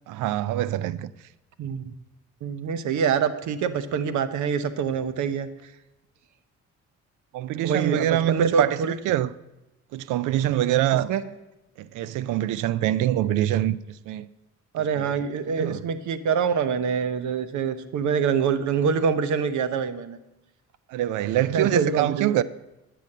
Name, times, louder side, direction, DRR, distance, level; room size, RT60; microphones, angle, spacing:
voice 1, 0.1-1.1 7.3-9.3 9.9-11.1 11.8-14.3 15.0-15.1 15.5-15.8 20.9-22.4, right 13 dB, 90° right, 0.5 m, -24 dB
voice 2, 1.6-1.9 2.4-5.7 7.6-8.9 11.1-11.2 14.7-20.2 21.5-22.4, right 6 dB, 70° right, 0.9 m, -25 dB
9.3 x 8.4 x 6.6 m
cardioid pair, 90°, 30 cm